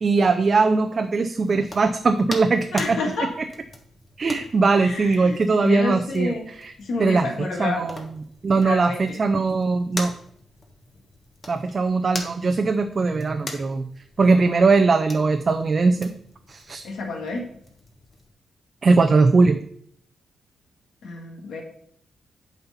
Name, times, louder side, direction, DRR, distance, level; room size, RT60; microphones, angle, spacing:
voice 1, 0.0-3.0 4.2-6.3 6.6-6.7 7.0-8.0 8.4-10.1 11.5-13.9 14.2-16.1 16.5-16.8 18.8-19.6, right 4 dB, 45° right, 7 dB, 0.5 m, -20 dB
sound 1, 1.3-18.3, left 2 dB, 35° left, 1.4 m, -42 dB
voice 2, 2.7-3.3 4.8-6.5 6.8-7.9 8.6-9.2 16.8-17.5 21.0-21.6, left 3 dB, 75° left, 2 dB, 1.7 m, -29 dB
8.0 x 4.2 x 5.6 m, 0.65 s
cardioid pair, 75°, 0 cm